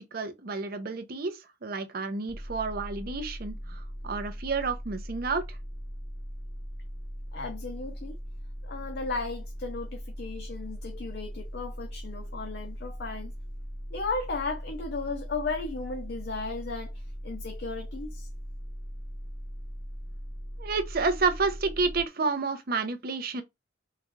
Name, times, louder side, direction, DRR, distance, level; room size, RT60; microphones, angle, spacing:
voice 1, 0.0-5.6 20.6-23.4, right 4 dB, 55° right, 0.6 m, -30 dB
sound 1, 2.3-22.0, equal, 5° left, 0.7 m, -39 dB
voice 2, 7.3-8.2 8.6-13.3 13.9-18.3, left 3 dB, 60° left, 0.6 m, -35 dB
3.8 x 2.3 x 3.1 m
head